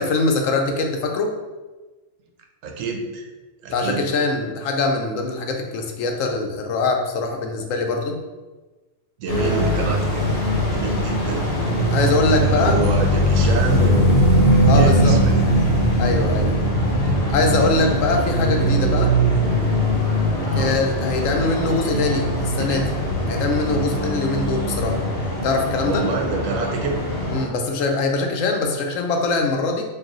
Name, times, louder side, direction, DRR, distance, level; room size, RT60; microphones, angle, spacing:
voice 1, 0.0-1.3 3.7-8.2 11.9-12.8 14.6-15.2 16.0-16.5 17.3-19.1 20.5-22.8 23.3-25.0 25.4-26.0 27.3-29.8, left 3 dB, 85° left, 3 dB, 1.0 m, -22 dB
voice 2, 2.6-3.3 3.6-4.0 9.2-10.2 10.7-11.4 12.4-14.3 14.7-15.4 17.3-17.7 20.4-20.8 22.4-22.9 25.8-27.0, right 4 dB, 85° right, 2 dB, 1.0 m, -27 dB
sound 1, 9.3-27.4, equal, 55° left, 1.0 m, -20 dB
4.6 x 2.6 x 3.0 m, 1.2 s
omnidirectional pair, 1.3 m